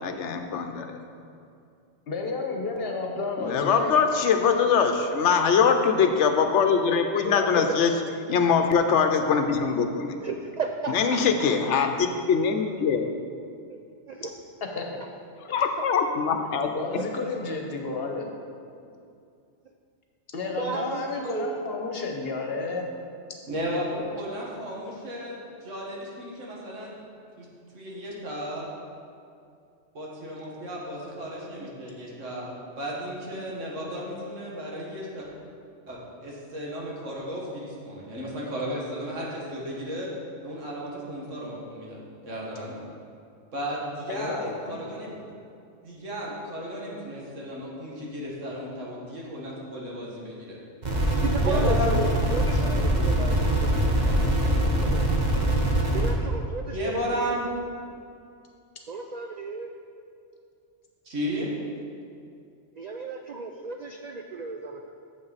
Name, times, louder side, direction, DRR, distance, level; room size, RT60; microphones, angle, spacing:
voice 1, 0.0-1.0 3.4-7.9 8.3-10.1 10.9-13.1 15.5-16.7, left 6 dB, 75° left, 6 dB, 0.9 m, -22 dB
voice 2, 2.1-3.9 7.2-7.7 14.6-14.9 15.5-15.6 16.7-18.3 20.3-22.9 44.1-44.8, left 3 dB, 55° left, 2 dB, 1.1 m, -31 dB
voice 3, 10.2-11.2 13.7-13.8 14.1-14.3 20.5-21.6 51.2-53.9 54.3-55.1 55.9-57.3 58.9-59.7 62.8-64.9, right 4 dB, 70° right, 3 dB, 0.4 m, -34 dB
voice 4, 23.5-27.0 27.4-27.5 27.7-28.7 29.9-35.3 35.9-40.1 40.4-42.0 42.3-42.8 43.5-45.1 45.8-50.6 51.4-52.1 53.2-53.4 56.7-57.4 61.1-61.5, equal, 85° right, -4 dB, 2.0 m, -34 dB
sound 1, 50.8-56.1, right 1 dB, 40° right, 1.2 m, -23 dB
8.7 x 7.3 x 4.1 m, 2.5 s
omnidirectional pair, 1.3 m